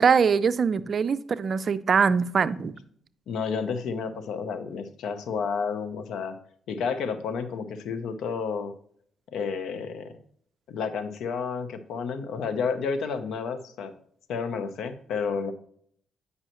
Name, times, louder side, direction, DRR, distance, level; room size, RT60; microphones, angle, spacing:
voice 1, 0.0-2.8, right 6 dB, 45° right, 15 dB, 0.4 m, -22 dB
voice 2, 3.3-6.3 6.7-8.7 9.3-10.1 10.7-13.9 14.3-15.5, left 5 dB, 75° left, 10 dB, 0.7 m, -31 dB
8.9 x 5.5 x 3.0 m, 0.64 s
cardioid pair, 90°, 0 cm